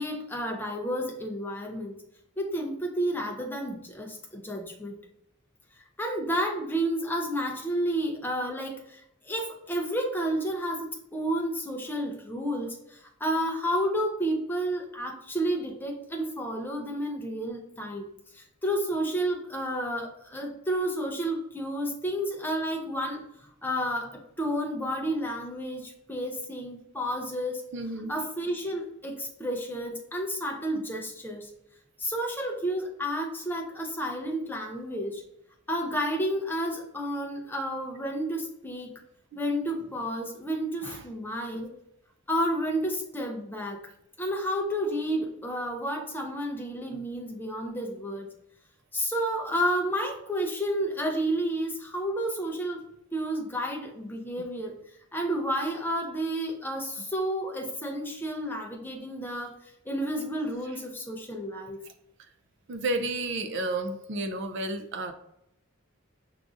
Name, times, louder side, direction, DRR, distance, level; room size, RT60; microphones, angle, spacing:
voice 1, 0.0-1.9 2.4-5.0 6.0-18.1 18.3-27.6 28.1-31.5 32.0-35.2 35.7-39.0 39.4-41.7 42.3-43.8 44.2-48.3 48.9-52.8 53.1-54.7 55.1-61.8, equal, 10° left, 2 dB, 0.4 m, -31 dB
voice 2, 27.7-28.1 40.8-41.0 62.7-65.1, right 2 dB, 55° right, 7 dB, 0.4 m, -31 dB
5.9 x 2.5 x 2.4 m, 0.81 s
head